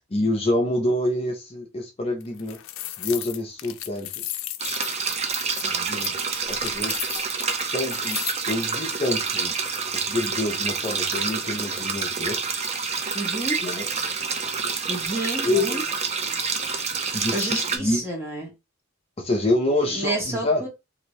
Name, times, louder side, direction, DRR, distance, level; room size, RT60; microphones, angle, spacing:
voice 1, 0.1-2.6 3.0-4.2 5.6-6.1 6.5-6.9 7.7-9.5 9.9-12.4 13.6-13.9 15.4-15.8 17.1-18.0 19.2-20.6, left 1 dB, 30° left, 0.6 m, -26 dB
sound 1, 2.2-8.5, left 13 dB, 85° left, 0.4 m, -34 dB
sound 2, 4.6-17.8, right 5 dB, 35° right, 0.5 m, -28 dB
voice 2, 13.1-13.6 14.9-15.8 17.3-18.5 19.9-20.7, right 2 dB, 15° right, 1.2 m, -29 dB
2.8 x 2.6 x 3.1 m
head